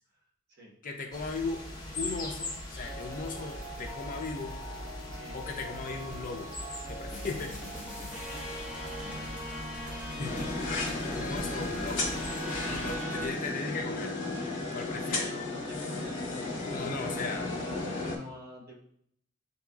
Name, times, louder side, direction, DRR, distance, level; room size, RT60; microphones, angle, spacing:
voice 1, 0.8-1.6 2.0-4.6 5.3-6.5 6.9-7.6 10.2-10.5 11.1-12.1 12.6-14.2 14.7-15.3 16.7-17.5, left 4 dB, 40° left, 3 dB, 0.5 m, -37 dB
sound 1, 1.1-13.0, left 1 dB, 20° left, 0.9 m, -41 dB
sound 2, 2.8-13.3, equal, 5° right, 0.9 m, -41 dB
voice 2, 5.1-5.5 8.2-9.7 10.1-10.6 13.0-13.3 14.4-14.6 15.0-18.7, left 1 dB, 50° right, -2 dB, 1.3 m, -47 dB
sound 3, 10.2-18.2, left 2 dB, 60° left, 1.0 m, -34 dB
7.5 x 2.8 x 2.3 m, 0.67 s
head